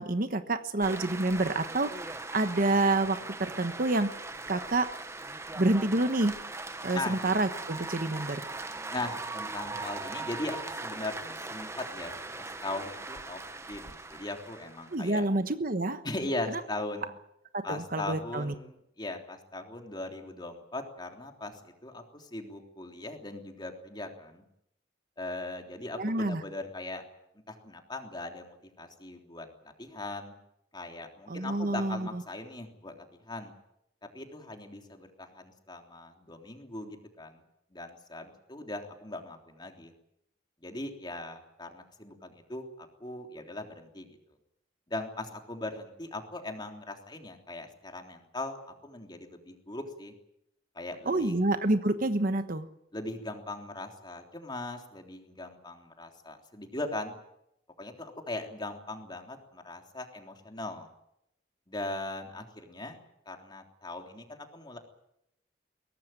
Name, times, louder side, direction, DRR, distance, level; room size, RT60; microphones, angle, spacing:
voice 1, 0.0-4.2 4.5-4.9 5.5-6.4 6.8-8.5 14.9-16.0 16.5-16.6 17.5-18.5 26.0-26.4 31.3-32.2 51.1-52.7, right 2 dB, 50° right, 10 dB, 1.2 m, -28 dB
sound 1, 0.8-15.1, right 3 dB, 15° right, 1.2 m, -40 dB
voice 2, 8.9-13.4 13.7-15.2 16.0-17.1 17.6-24.4 25.2-27.0 27.5-30.3 30.7-33.5 34.1-37.4 37.7-39.9 40.6-44.2 44.9-50.1 50.7-51.3 52.9-57.1 57.8-60.9 61.7-63.0 63.2-64.8, left 2 dB, 25° left, 3 dB, 3.4 m, -39 dB
23.0 x 18.0 x 9.1 m, 0.80 s
head